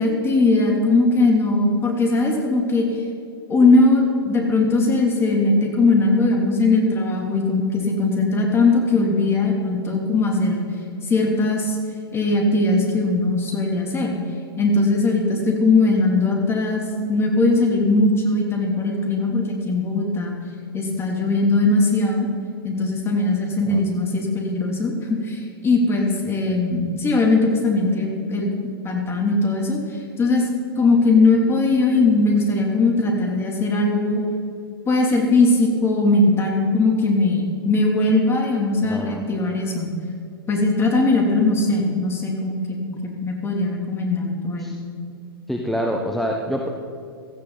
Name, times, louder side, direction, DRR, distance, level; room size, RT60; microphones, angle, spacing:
voice 1, 0.0-2.9 3.5-10.7 11.0-11.8 12.1-14.2 14.6-20.4 20.7-22.3 22.6-28.5 28.8-29.8 30.2-30.4 30.8-34.2 34.9-39.9 40.5-44.7, left 2 dB, 20° left, 1 dB, 2.9 m, -19 dB
voice 2, 38.8-39.2 44.6-44.7 45.5-46.7, equal, ahead, 1 dB, 1.1 m, -26 dB
16.5 x 14.0 x 4.1 m, 2.6 s
figure-of-eight pair, 105°, 12 cm